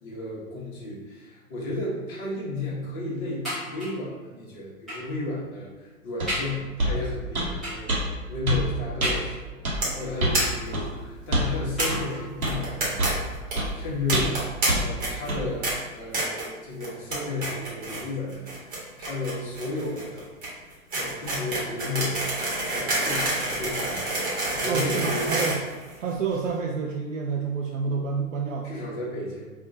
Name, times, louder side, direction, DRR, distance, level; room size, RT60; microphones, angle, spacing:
voice 1, 0.0-14.3 14.8-20.2 20.9-22.2 22.7-25.4 28.6-29.5, left 2 dB, 35° left, -4 dB, 1.1 m, -33 dB
sound 1, 3.4-4.1 4.9-5.2 5.7-5.8 6.3-6.6 7.6-8.0 9.0-9.6 10.4-11.0 11.8-12.5 13.3-13.4 13.7-13.8, equal, ahead, 0.3 m, -34 dB
sound 2, 6.2-6.3 6.8-7.0 7.3-7.5 7.9-8.0 8.5-8.6 9.0-9.1 9.6-9.8 10.2-10.4 10.7-10.9 11.3-11.5 11.9-12.0 12.4-12.6 13.0-13.2 13.6-13.7 14.1-14.4 14.7-14.8 15.3-15.4, right 1 dB, 85° right, 1.1 m, -25 dB
sound 3, 9.8-10.0 10.3-10.4 10.7-10.8 11.0-11.1 11.8-11.9 12.4-13.1 13.3-13.5 14.1-14.7 15.0-15.3 15.6-15.7 16.1-16.5 16.8-17.2 17.4-18.0 18.3-26.3, right 2 dB, 20° right, 1.2 m, -28 dB
voice 2, 24.7-25.6 26.0-29.0, right 5 dB, 65° right, 0 dB, 0.5 m, -29 dB
4.7 x 2.5 x 2.6 m, 1.3 s
figure-of-eight pair, 115°, 42 cm